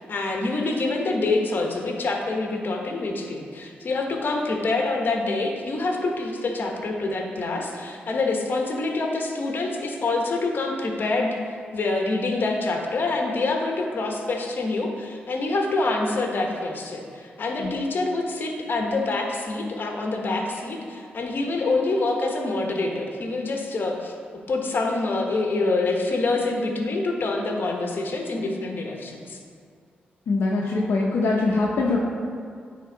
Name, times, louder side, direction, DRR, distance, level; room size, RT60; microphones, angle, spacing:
voice 1, 0.0-24.1 24.5-29.4, left 3 dB, 55° left, 1 dB, 1.1 m, -26 dB
voice 2, 30.3-32.0, left 3 dB, 75° left, -3 dB, 0.8 m, -22 dB
9.4 x 3.7 x 3.9 m, 2.2 s
supercardioid pair, 55°, 4 cm